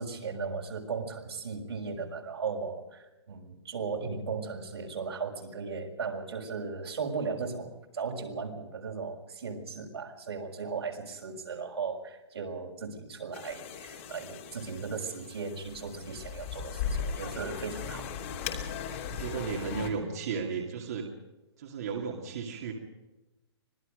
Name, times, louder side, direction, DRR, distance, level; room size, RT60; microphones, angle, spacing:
voice 1, 0.0-18.1, right 5 dB, 75° right, 1 dB, 6.3 m, -37 dB
sound 1, 13.3-19.9, left 7 dB, 30° left, 2.9 m, -38 dB
voice 2, 19.1-21.1 21.6-22.7, right 5 dB, 35° right, 0 dB, 2.6 m, -34 dB
25.5 x 20.0 x 5.2 m, 1.0 s
hypercardioid pair, 175°, 14 cm